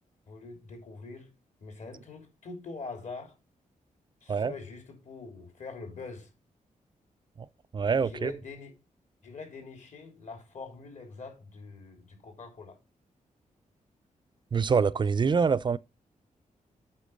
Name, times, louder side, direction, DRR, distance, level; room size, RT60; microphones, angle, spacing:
voice 1, 0.3-1.3 1.6-3.3 4.2-6.3 8.0-8.7 9.2-12.8, left 4 dB, 60° left, 3.3 m, -44 dB
voice 2, 7.7-8.3 14.5-15.8, right 5 dB, 35° right, 0.4 m, -25 dB
8.3 x 5.8 x 5.1 m
wide cardioid pair, 115°, 14 cm